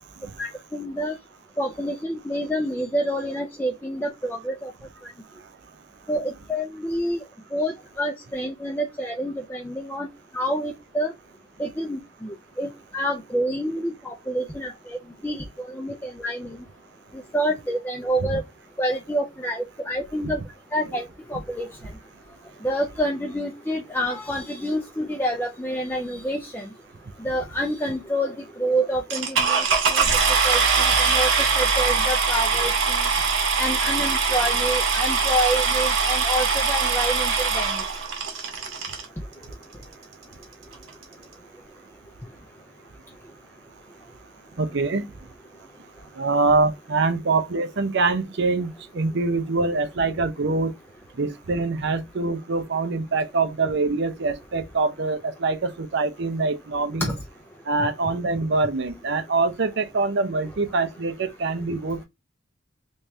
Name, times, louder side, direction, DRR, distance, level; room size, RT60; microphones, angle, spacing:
voice 1, 0.4-1.1 1.6-4.7 6.1-7.2 7.5-10.1 10.3-11.1 11.6-15.0 15.2-16.6 17.3-18.4 18.8-20.4 20.7-21.0 21.3-21.7 22.6-26.6 27.2-28.3 28.6-30.1 30.4-31.3 31.6-33.0 33.6-37.7 57.0-57.1, equal, 10° left, 0.5 m, -27 dB
sound 1, 29.1-39.0 39.8-39.9 40.4-40.5 40.7-41.0, right 5 dB, 80° right, 1.2 m, -22 dB
voice 2, 44.6-45.1 46.2-50.7 51.2-57.1 57.7-62.1, right 3 dB, 60° right, 0.6 m, -24 dB
3.4 x 3.2 x 2.7 m
head